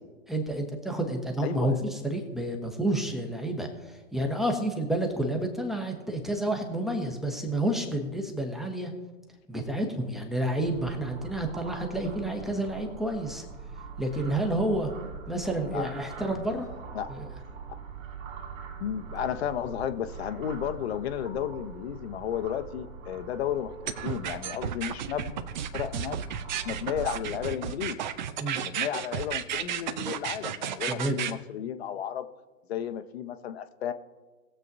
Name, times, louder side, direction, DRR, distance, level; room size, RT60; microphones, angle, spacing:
voice 1, 0.3-8.9 9.5-13.4 14.0-14.9 15.3-16.7 17.1-17.3 28.4-28.6 30.9-31.2, right 1 dB, ahead, 2 dB, 1.0 m, -30 dB
voice 2, 1.4-1.8 15.7-15.9 16.9-17.1 18.8-25.5 25.7-26.2 26.6-28.0 28.6-32.3 32.7-33.9, left 9 dB, 45° left, 10 dB, 0.9 m, -33 dB
sound 1, 10.6-27.5, right 5 dB, 60° right, 2.5 m, -43 dB
sound 2, 23.9-31.3, right 9 dB, 35° right, 0.6 m, -33 dB
20.0 x 7.5 x 2.7 m, 1.2 s
figure-of-eight pair, 125°, 43 cm